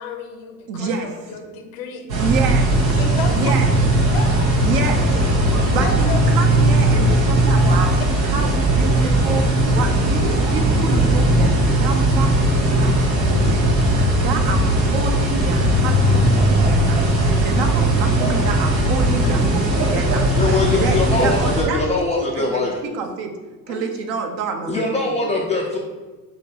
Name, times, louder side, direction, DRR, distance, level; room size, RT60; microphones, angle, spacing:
voice 1, 0.0-2.1 3.0-3.5 4.1-4.6 5.1-5.2 5.6-6.2 12.9-13.0 17.5-17.6 19.2-19.4 20.6-20.8 22.8-23.0 23.6-23.8, left 4 dB, 65° left, 5 dB, 0.8 m, -32 dB
voice 2, 0.7-1.1 2.2-3.0 3.3-3.7 4.6-5.0 5.7-8.0 8.2-21.8 22.2-22.6 22.9-23.3 23.7-24.8 25.2-25.3, right 5 dB, 60° right, 4 dB, 0.8 m, -28 dB
sound 1, 2.1-21.6, right 1 dB, 85° right, 0.9 m, -18 dB
voice 3, 20.4-22.8 24.7-25.8, left 3 dB, 15° left, -2 dB, 0.3 m, -22 dB
5.1 x 2.9 x 2.8 m, 1.3 s
figure-of-eight pair, 55°, 49 cm